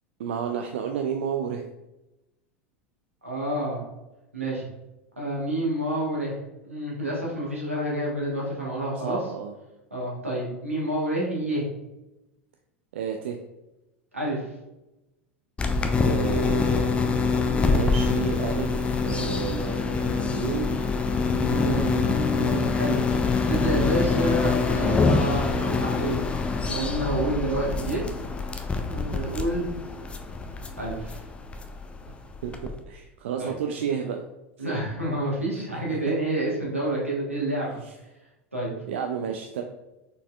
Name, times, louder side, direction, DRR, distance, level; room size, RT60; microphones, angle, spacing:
voice 1, 0.2-1.6 9.0-9.5 12.9-13.4 16.0-20.8 32.4-34.2 37.8-37.9 38.8-39.6, right 7 dB, 65° right, 4 dB, 0.3 m, -31 dB
voice 2, 3.2-3.8 4.3-4.6 5.2-6.4 6.6-9.2 9.9-11.6 14.1-14.4 21.3-23.0 23.5-26.2 26.6-28.0 28.9-29.7 30.8-31.2 33.4-33.5 34.6-37.8 38.5-38.7, right 1 dB, 90° right, -4 dB, 1.3 m, -28 dB
sound 1, 15.6-32.8, left 4 dB, 15° left, 0.4 m, -25 dB
4.1 x 4.0 x 2.3 m, 0.97 s
figure-of-eight pair, 80°, 7 cm